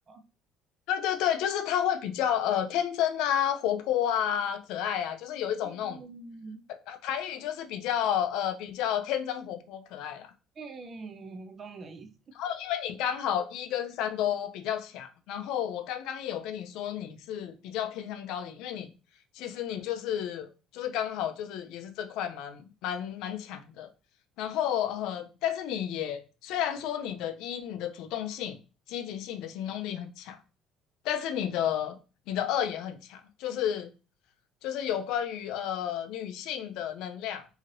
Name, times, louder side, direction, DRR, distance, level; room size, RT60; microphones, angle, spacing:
voice 1, 0.9-6.0 6.9-10.3 12.3-18.9 19.4-20.5 20.7-23.9 24.4-28.6 28.9-30.4 31.0-32.0 32.3-33.9 34.6-37.5, left 10 dB, 65° left, 0.4 m, -31 dB
voice 2, 5.6-6.6 10.6-12.1, right 3 dB, 25° right, 0.3 m, -44 dB
3.0 x 2.7 x 2.5 m
cardioid pair, 175°, 0 cm